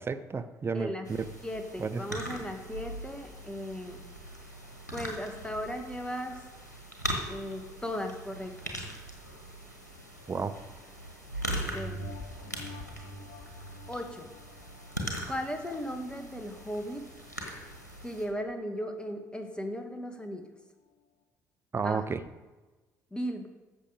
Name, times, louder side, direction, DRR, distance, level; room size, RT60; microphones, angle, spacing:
voice 1, 0.0-1.3 1.8-2.2 10.3-10.6 21.7-22.2, right 5 dB, 25° right, 10 dB, 0.8 m, -32 dB
voice 2, 0.7-1.1 1.4-4.0 4.9-6.4 7.3-8.8 11.7-12.0 13.9-14.3 15.3-17.0 18.0-20.4 21.8-22.0 23.1-23.5, equal, 10° left, 5 dB, 1.8 m, -36 dB
sound 1, 1.1-18.3, right 1 dB, 90° left, 1.4 m, -41 dB
sound 2, 11.6-16.6 17.1-17.2, right 1 dB, 45° left, 1.6 m, -45 dB
14.0 x 6.8 x 5.0 m, 1.2 s
figure-of-eight pair, 50°, 9 cm